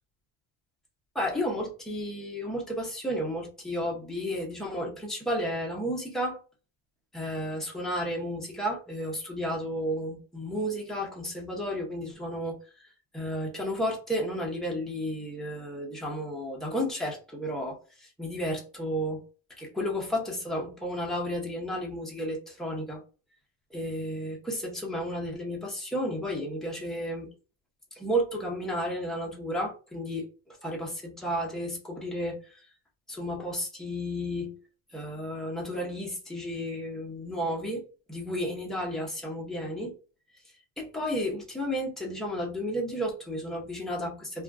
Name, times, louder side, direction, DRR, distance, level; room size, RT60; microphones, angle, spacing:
voice 1, 1.1-6.4 7.1-12.5 13.1-19.2 19.6-23.0 23.7-27.3 27.9-32.6 33.1-34.6 34.9-37.8 38.1-39.9 40.8-44.4, equal, ahead, 0.6 m, -32 dB
2.5 x 2.3 x 3.4 m
cardioid pair, 160°, 45 cm